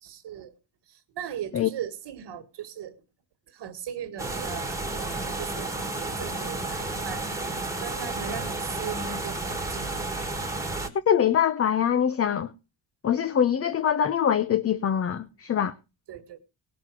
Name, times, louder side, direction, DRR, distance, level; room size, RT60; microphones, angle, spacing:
voice 1, 0.0-0.5 0.9-3.0 3.5-10.1 16.1-16.4, right 8 dB, 65° right, 1.7 m, -39 dB
sound 1, 4.2-10.9, right 2 dB, 5° right, 1.7 m, -32 dB
voice 2, 11.1-12.5 13.0-15.7, left 9 dB, 30° left, 0.6 m, -23 dB
18.5 x 6.2 x 6.0 m
cardioid pair, 140°, 45 cm